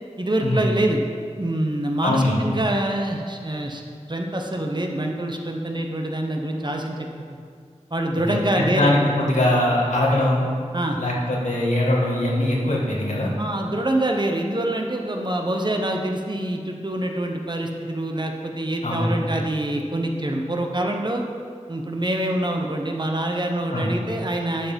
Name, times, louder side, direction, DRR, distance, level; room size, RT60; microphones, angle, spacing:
voice 1, 0.2-1.0 1.4-3.8 4.1-7.1 7.9-9.0 10.7-11.0 13.4-21.2 21.7-24.7, right 1 dB, 40° right, 2 dB, 1.0 m, -25 dB
voice 2, 2.0-2.4 8.2-10.4 11.0-13.3 18.8-19.2 23.7-23.9, left 1 dB, 80° left, -4 dB, 1.8 m, -22 dB
11.0 x 5.0 x 5.3 m, 2.1 s
wide cardioid pair, 50°, 12 cm